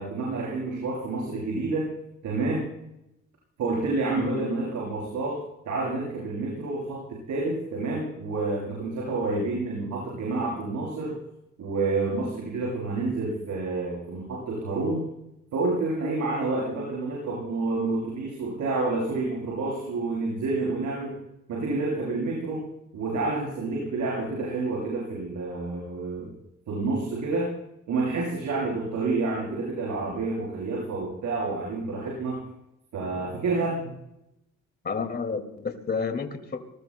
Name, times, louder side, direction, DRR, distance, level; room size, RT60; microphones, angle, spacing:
voice 1, 0.0-1.9 2.2-2.7 3.6-5.4 5.7-11.1 11.6-15.1 15.5-21.2 21.5-22.6 22.9-26.3 26.7-27.5 27.9-32.4 32.9-33.9, right 3 dB, 75° right, -4 dB, 7.6 m, -29 dB
voice 2, 34.8-36.6, left 5 dB, 30° left, 6 dB, 2.2 m, -30 dB
28.0 x 20.0 x 2.2 m, 0.85 s
cardioid pair, 90°, 30 cm